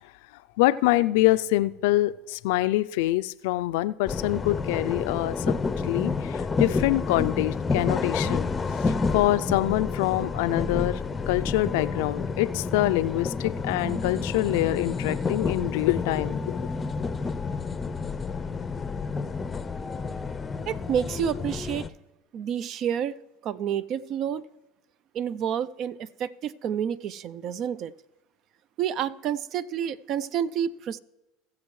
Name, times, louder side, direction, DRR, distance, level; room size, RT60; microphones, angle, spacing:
voice 1, 0.6-5.6 5.8-8.5 8.8-16.6, left 17 dB, 75° left, 0.4 m, -25 dB
sound 1, 4.1-21.9, left 4 dB, 20° left, 0.6 m, -29 dB
voice 2, 20.7-21.9 22.3-23.2 23.4-24.4 25.1-27.9 28.8-31.0, right 9 dB, 50° right, 0.4 m, -29 dB
19.0 x 7.4 x 3.2 m
hypercardioid pair, 90°, 0 cm